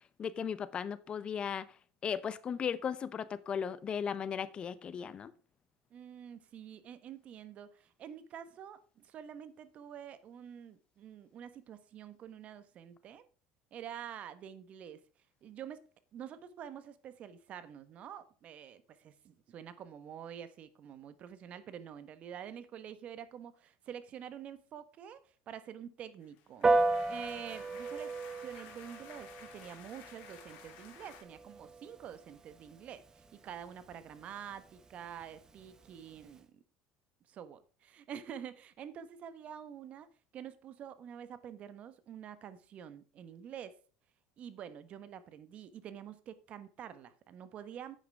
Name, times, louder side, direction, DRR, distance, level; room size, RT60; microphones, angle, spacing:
voice 1, 0.2-1.7 2.0-5.3, left 7 dB, 35° left, 0.8 m, -36 dB
voice 2, 5.9-13.3 13.7-15.0 15.4-15.8 16.1-26.7 27.1-28.1 28.4-36.6 37.3-40.1 40.3-43.8 44.4-48.0, right 9 dB, 45° right, 1.2 m, -47 dB
sound 1, 26.2-31.2, left 8 dB, 65° left, 2.9 m, -54 dB
Piano, 26.6-36.4, right 3 dB, 20° right, 1.0 m, -36 dB
9.8 x 9.0 x 3.6 m
supercardioid pair, 100°, 3 cm